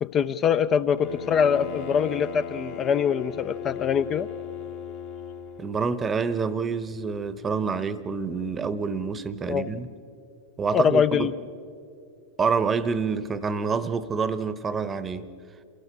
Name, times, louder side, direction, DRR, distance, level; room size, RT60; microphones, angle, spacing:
voice 1, 0.0-4.3 9.4-9.7 10.7-11.3, left 7 dB, 30° left, 0.5 m, -23 dB
Bowed string instrument, 1.0-5.8, left 7 dB, 45° left, 1.3 m, -37 dB
voice 2, 5.6-9.9 10.6-11.3 12.4-15.3, right 5 dB, 20° right, 0.9 m, -27 dB
28.5 x 17.0 x 6.7 m
figure-of-eight pair, 90°, 0 cm